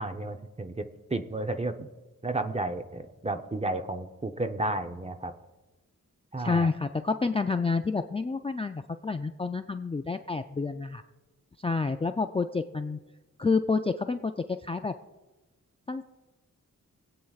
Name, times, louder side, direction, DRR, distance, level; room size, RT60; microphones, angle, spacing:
voice 1, 0.0-1.9 2.2-5.3 6.3-6.7, right 2 dB, 20° right, 7 dB, 0.7 m, -32 dB
voice 2, 6.4-11.0 11.6-13.0 13.4-14.9 15.9-16.0, left 4 dB, 20° left, 7 dB, 0.3 m, -29 dB
26.0 x 8.7 x 2.4 m, 1.1 s
wide cardioid pair, 120°, 33 cm